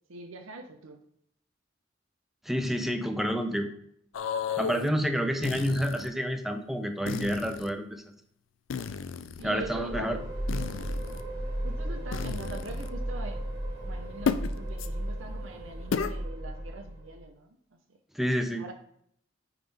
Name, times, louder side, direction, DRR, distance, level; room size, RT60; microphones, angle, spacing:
voice 1, 0.1-1.0 9.4-10.3 11.6-13.5 13.8-17.6 17.9-18.0 18.6-18.7, right 2 dB, 85° right, 5 dB, 0.7 m, -42 dB
voice 2, 2.5-3.7 4.6-8.0 9.4-10.2 18.1-18.6, equal, ahead, 5 dB, 0.5 m, -29 dB
sound 1, 4.1-4.9 5.4-6.1 7.1-7.7 8.7-9.4 10.5-11.2 12.1-12.9 14.3-14.5 14.8-14.9 15.9-16.1, left 6 dB, 75° left, 0.4 m, -33 dB
sound 2, 9.4-17.2, right 1 dB, 55° right, 1.5 m, -35 dB
9.2 x 3.7 x 3.4 m, 0.68 s
head